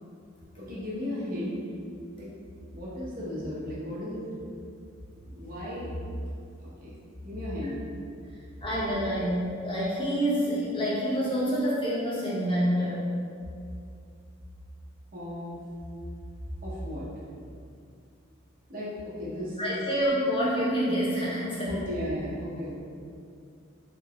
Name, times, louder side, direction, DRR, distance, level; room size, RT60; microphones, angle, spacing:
voice 1, 0.6-1.6 2.2-2.3 2.7-4.2 5.3-5.9 6.6-6.9 7.2-7.8 15.1-15.6 16.6-17.0 18.7-19.8 21.6-22.7, left 1 dB, 40° right, -7 dB, 0.8 m, -35 dB
voice 2, 8.6-13.1 19.6-21.8, equal, 25° left, -7 dB, 0.7 m, -27 dB
3.8 x 2.7 x 2.2 m, 2.4 s
head